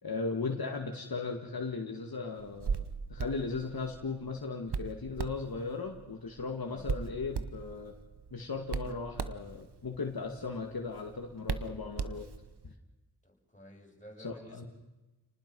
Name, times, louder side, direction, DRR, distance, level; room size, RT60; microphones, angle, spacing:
voice 1, 0.0-7.9 8.3-12.3 12.6-12.7 14.2-14.6, left 4 dB, 65° left, 2 dB, 2.2 m, -37 dB
Hands, 2.4-12.7, right 6 dB, 90° right, 1.1 m, -39 dB
voice 2, 6.6-7.0 13.2-14.7, equal, 20° left, -1 dB, 6.9 m, -52 dB
30.0 x 19.5 x 5.5 m, 1.1 s
wide cardioid pair, 65°, 39 cm